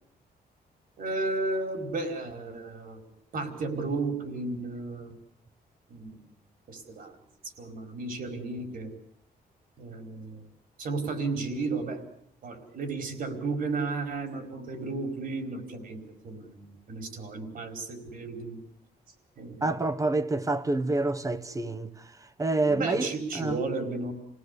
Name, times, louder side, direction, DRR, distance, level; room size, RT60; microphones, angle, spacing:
voice 1, 1.0-3.0 3.3-5.1 5.9-6.2 6.7-7.1 7.6-8.9 9.8-10.4 10.8-12.0 12.4-18.6 19.4-19.7 22.6-24.1, right 3 dB, 60° right, 4.9 m, -33 dB
voice 2, 19.6-22.1 22.4-23.6, right 2 dB, 20° right, 1.2 m, -28 dB
28.5 x 18.0 x 8.3 m
cardioid pair, 130°, 16 cm